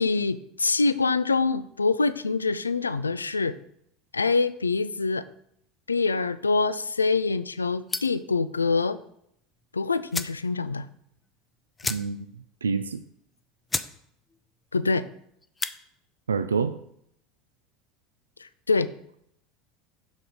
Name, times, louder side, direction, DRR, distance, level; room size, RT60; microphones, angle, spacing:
voice 1, 0.0-3.6 4.1-5.2 5.9-9.0 9.7-10.9 14.7-15.0 18.4-18.9, left 4 dB, 85° left, 14 dB, 0.3 m, -25 dB
sound 1, 7.9-8.3 9.6-9.7 10.1-10.4 10.8-10.9 11.1-11.3 11.8-12.4 12.7-12.8 13.3-13.4 13.7-14.0 14.3-14.7 15.4-15.8, left 3 dB, 15° left, 0.6 m, -32 dB
voice 2, 11.9-13.0 16.3-16.8, right 5 dB, 80° right, 10 dB, 0.4 m, -28 dB
7.2 x 6.4 x 4.9 m, 0.72 s
figure-of-eight pair, 75°, 0 cm